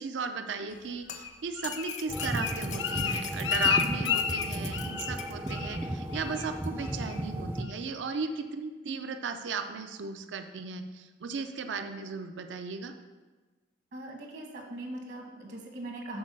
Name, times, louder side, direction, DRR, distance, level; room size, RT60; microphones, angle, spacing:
voice 1, 0.0-12.9, right 4 dB, 90° right, 8 dB, 0.5 m, -36 dB
sound 1, 0.7-5.5 6.6-6.7, left 8 dB, 45° left, 0.5 m, -43 dB
Bird, 1.1-5.2 5.5-5.9 6.1-6.5 6.8-7.2 7.6-7.7, left 8 dB, 90° left, 0.5 m, -31 dB
sound 2, 2.1-7.6, right 1 dB, 10° right, 0.3 m, -35 dB
voice 2, 13.9-16.2, right 1 dB, 70° right, 1 dB, 1.2 m, -40 dB
6.4 x 3.9 x 6.0 m, 1.3 s
head